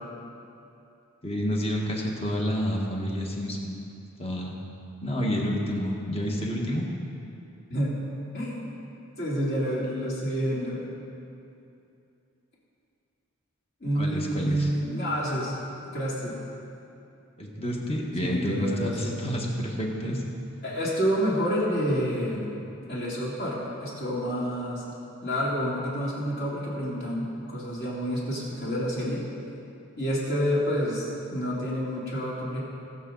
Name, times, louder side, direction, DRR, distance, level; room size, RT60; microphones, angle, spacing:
voice 1, 1.2-3.8 4.2-4.5 5.0-6.9 13.9-14.7 17.4-20.2, equal, 30° left, -1 dB, 1.5 m, -29 dB
voice 2, 8.3-8.7 9.2-10.8 13.8-15.5 15.9-16.4 18.2-19.2 20.6-22.5 22.9-24.8 25.2-29.2 30.0-32.6, equal, 50° left, -7 dB, 3.1 m, -28 dB
20.0 x 7.4 x 4.0 m, 2.7 s
head